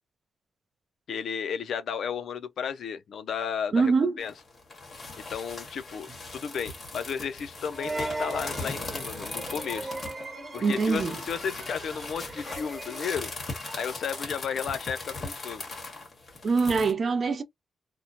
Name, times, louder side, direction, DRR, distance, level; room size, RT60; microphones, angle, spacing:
voice 1, 1.1-4.3 5.2-9.9 10.5-13.3 13.8-15.6, left 7 dB, 70° left, 0.4 m, -33 dB
voice 2, 3.7-4.1 10.6-11.2 16.4-17.4, right 4 dB, 40° right, 0.5 m, -24 dB
sound 1, 4.2-16.9, left 3 dB, 30° left, 1.4 m, -39 dB
sound 2, 7.7-14.2, right 2 dB, 20° right, 0.9 m, -39 dB
3.0 x 2.0 x 2.6 m
wide cardioid pair, 150°, 0 cm